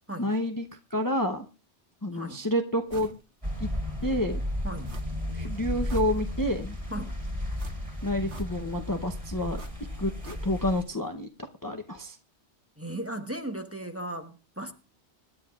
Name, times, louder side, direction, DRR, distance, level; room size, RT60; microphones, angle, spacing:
voice 1, 0.2-0.7 0.9-1.4 2.0-3.1 3.6-3.7 4.0-4.4 5.3-6.8 8.0-9.6 10.0-11.3 11.6-12.2, left 1 dB, 20° left, 5 dB, 0.8 m, -29 dB
voice 2, 2.1-2.4 4.6-4.9 6.9-7.2 12.8-14.7, right 1 dB, 15° right, 5 dB, 1.1 m, -36 dB
sound 1, 2.9-3.2 3.6-3.7 4.8-5.3 5.7-6.6 7.6-8.8 9.5-10.8 11.1-11.2, right 2 dB, 80° right, 1.9 m, -47 dB
sound 2, 3.4-10.8, left 1 dB, 30° right, 3.7 m, -34 dB
24.5 x 11.5 x 2.4 m, 0.31 s
omnidirectional pair, 1.2 m